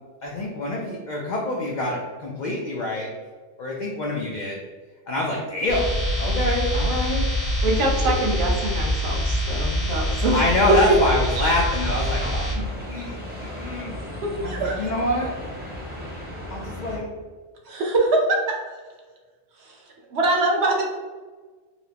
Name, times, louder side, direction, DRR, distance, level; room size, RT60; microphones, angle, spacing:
voice 1, 0.2-3.1 3.6-4.6 5.1-7.3 10.3-12.5 12.9-13.2 13.4-14.0 14.4-15.3 16.5-17.1, left 1 dB, 70° left, -2 dB, 0.4 m, -26 dB
sound 1, 5.7-12.6, equal, 30° left, 0.7 m, -25 dB
voice 2, 7.6-10.4 10.7-11.0 11.4-11.5 12.6-12.7, right 1 dB, 90° right, 1 dB, 1.0 m, -24 dB
sound 2, 11.8-17.0, left 1 dB, 10° right, 0.6 m, -35 dB
voice 3, 14.2-14.9 17.7-18.5 19.6-19.8 20.1-20.8, right 2 dB, 60° right, -1 dB, 0.9 m, -22 dB
4.3 x 2.0 x 2.7 m, 1.4 s
omnidirectional pair, 1.3 m